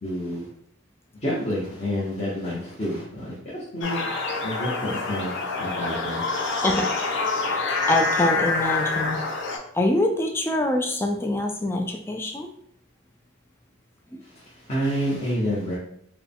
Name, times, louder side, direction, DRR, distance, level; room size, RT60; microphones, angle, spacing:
voice 1, 0.0-0.5 1.2-4.0 4.4-5.3 5.6-6.2 14.2-15.8, equal, 30° left, -8 dB, 1.0 m, -29 dB
sound 1, 3.8-9.6, left 3 dB, 60° left, 0.8 m, -26 dB
voice 2, 6.6-9.2 9.7-12.5 14.1-14.2, left 1 dB, 10° left, 3 dB, 0.3 m, -25 dB
4.5 x 2.2 x 3.5 m, 0.68 s
head